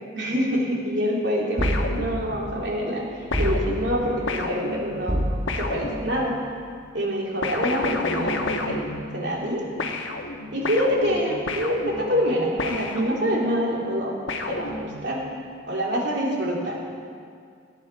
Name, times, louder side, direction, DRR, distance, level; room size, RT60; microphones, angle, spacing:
voice 1, 0.1-5.3 5.6-6.4 6.9-8.7 9.1-9.6 10.5-14.1 14.5-15.2 15.7-16.8, equal, 60° right, -3 dB, 2.9 m, -26 dB
sound 1, 1.6-2.6 3.3-6.5 7.4-9.5 9.8-13.6 14.3-15.3, left 2 dB, 75° left, 1.2 m, -31 dB
sound 2, 1.6-2.3 3.3-4.1 5.1-5.8, equal, 25° right, 1.5 m, -26 dB
21.0 x 10.0 x 4.6 m, 2.2 s
head